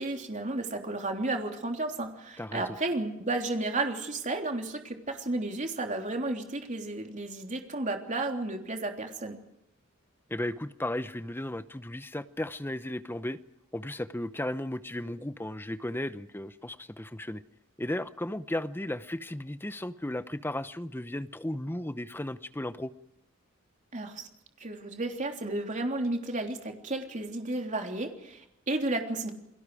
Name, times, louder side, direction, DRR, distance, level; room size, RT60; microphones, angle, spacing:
voice 1, 0.0-9.4 23.9-24.3 24.6-29.3, right 2 dB, 35° right, 3 dB, 3.4 m, -32 dB
voice 2, 2.4-2.8 10.3-13.4 13.7-17.4 17.8-22.9, left 1 dB, 10° left, 12 dB, 0.8 m, -35 dB
29.0 x 21.5 x 4.9 m, 0.82 s
head